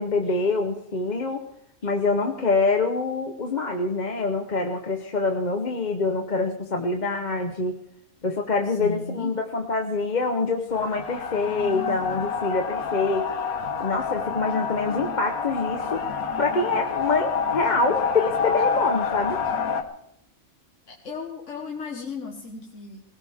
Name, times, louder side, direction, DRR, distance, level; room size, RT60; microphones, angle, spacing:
voice 1, 0.0-1.4 1.8-7.8 8.2-13.3 13.8-16.0 16.4-19.4, left 3 dB, 35° left, 4 dB, 1.0 m, -25 dB
voice 2, 8.6-9.3 20.9-23.0, left 4 dB, 60° left, 0 dB, 1.8 m, -35 dB
sound 1, 10.7-19.8, left 5 dB, 90° left, 1.5 m, -28 dB
20.0 x 17.5 x 3.6 m, 0.77 s
omnidirectional pair, 1.5 m